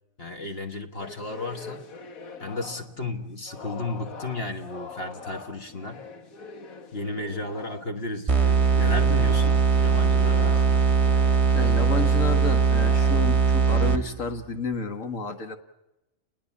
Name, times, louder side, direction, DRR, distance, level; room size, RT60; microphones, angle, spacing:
voice 1, 0.2-1.8 2.4-6.0 6.9-10.9, left 2 dB, 45° left, 5 dB, 1.7 m, -34 dB
sound 1, 1.0-3.1 3.5-8.0 8.4-13.9, left 5 dB, 90° left, 1.9 m, -43 dB
sound 2, 8.3-14.3, right 5 dB, 25° right, 1.0 m, -20 dB
voice 2, 11.5-15.6, left 4 dB, 70° left, 6 dB, 1.9 m, -31 dB
29.0 x 21.0 x 7.3 m, 0.95 s
omnidirectional pair, 1.4 m